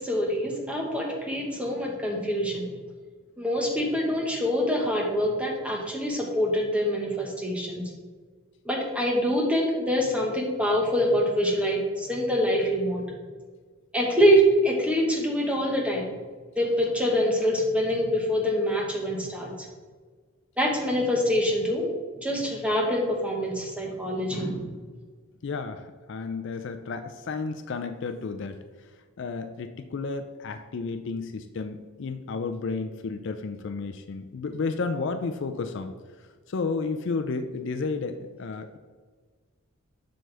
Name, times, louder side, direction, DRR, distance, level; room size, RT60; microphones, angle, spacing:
voice 1, 0.0-2.7 3.4-7.8 8.6-13.1 13.9-16.1 16.6-19.5 20.6-21.8 22.2-24.7, equal, 5° right, -1 dB, 1.2 m, -25 dB
voice 2, 25.4-28.6 29.2-35.9 36.5-38.8, left 4 dB, 55° left, 8 dB, 0.4 m, -32 dB
7.7 x 6.4 x 3.4 m, 1.5 s
head